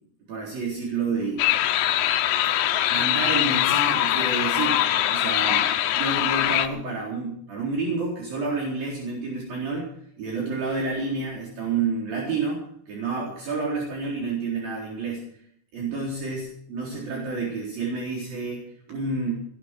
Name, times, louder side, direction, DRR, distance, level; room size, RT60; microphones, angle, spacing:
voice 1, 0.3-1.5 2.9-9.9 10.2-15.2 15.7-19.3, right 4 dB, 60° right, -3 dB, 5.6 m, -29 dB
sound 1, 1.4-6.7, left 12 dB, 90° left, 3.2 m, -22 dB
19.5 x 13.0 x 4.4 m, 0.66 s
omnidirectional pair, 4.8 m